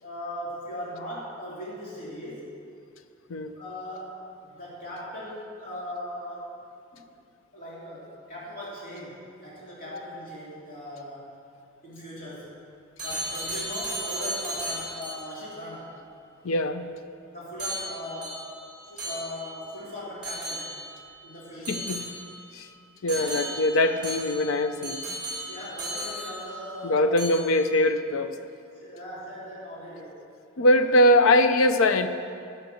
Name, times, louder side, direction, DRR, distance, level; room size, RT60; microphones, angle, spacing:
voice 1, 0.0-2.5 3.5-6.6 6.9-7.0 7.5-11.4 11.8-12.5 13.0-16.0 17.3-18.4 18.9-20.8 21.2-21.9 23.1-23.5 23.8-24.0 25.5-27.2 28.8-30.2 30.5-30.8, left 1 dB, 40° left, -7 dB, 2.9 m, -39 dB
sound 1, 13.0-15.4 17.6-19.7 20.2-21.0 21.6-22.5 23.1-26.8 27.2-27.7, right 1 dB, 5° right, 2.9 m, -35 dB
voice 2, 16.4-16.9 21.7-22.1 22.5-22.7 23.0-25.1 26.8-28.3 30.6-32.1, left 1 dB, 75° left, 10 dB, 0.6 m, -22 dB
11.5 x 6.7 x 6.3 m, 2.4 s
head